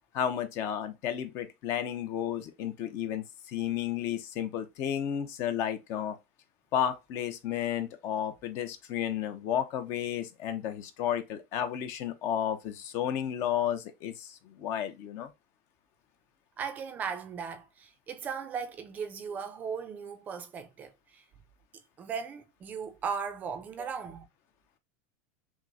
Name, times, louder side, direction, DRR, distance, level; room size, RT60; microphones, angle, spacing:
voice 1, 0.1-6.2 6.7-15.3, left 10 dB, 45° left, 0.6 m, -32 dB
voice 2, 16.6-21.2 22.0-24.3, right 6 dB, 25° right, 0.4 m, -37 dB
5.9 x 2.0 x 2.6 m
supercardioid pair, 150°, 7 cm